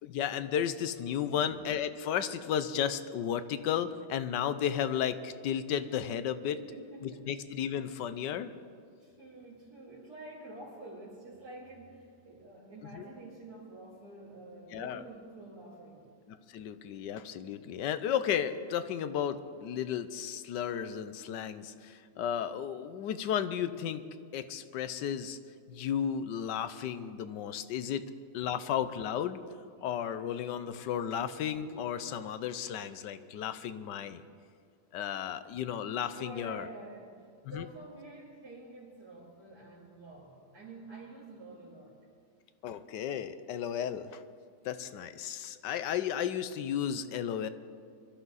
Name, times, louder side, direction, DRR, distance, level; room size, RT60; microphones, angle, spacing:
voice 1, 0.0-6.6 7.0-8.5 12.9-13.0 14.7-15.0 16.3-24.0 24.3-25.4 25.7-28.0 28.3-29.4 29.8-34.2 34.9-36.6 37.4-37.6 42.6-44.2 44.6-47.5, left 9 dB, 75° left, 12 dB, 1.3 m, -34 dB
voice 2, 6.5-7.3 9.0-16.1 21.2-21.3 36.1-41.9, right 2 dB, 55° right, -10 dB, 3.7 m, -48 dB
23.0 x 13.5 x 4.1 m, 2.3 s
omnidirectional pair, 2.0 m